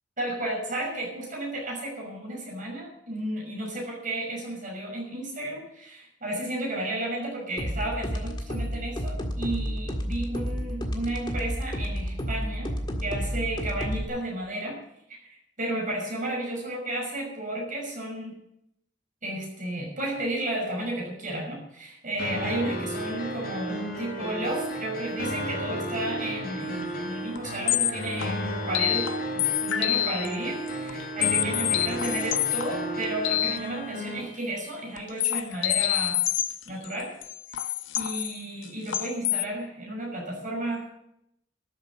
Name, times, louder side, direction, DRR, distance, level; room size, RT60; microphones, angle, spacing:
voice 1, 0.2-12.7 13.0-14.8 15.1-18.4 19.2-36.2 36.7-37.2 37.9-40.9, right 1 dB, 45° right, -2 dB, 6.2 m, -33 dB
sound 1, 7.6-14.0, equal, 25° left, 1.7 m, -31 dB
sound 2, 22.2-34.2, right 1 dB, 55° left, 3.8 m, -33 dB
sound 3, 26.8-26.9 27.4-27.5 27.7-30.4 30.7-33.6 35.0-39.4, left 13 dB, 85° left, 0.7 m, -27 dB
13.0 x 7.6 x 9.6 m, 0.77 s
head